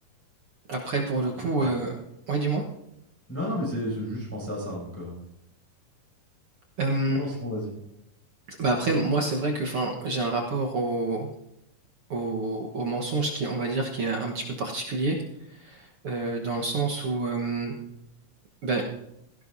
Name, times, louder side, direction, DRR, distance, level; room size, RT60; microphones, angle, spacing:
voice 1, 0.7-1.9 2.3-2.6 6.8-7.2 8.5-11.3 12.1-15.2 15.5-17.7 18.6-18.8, right 3 dB, 55° right, 0 dB, 1.7 m, -27 dB
voice 2, 3.3-5.2 7.1-7.7, left 1 dB, 5° left, -6 dB, 6.7 m, -32 dB
17.5 x 16.5 x 2.7 m, 0.81 s
omnidirectional pair, 3.8 m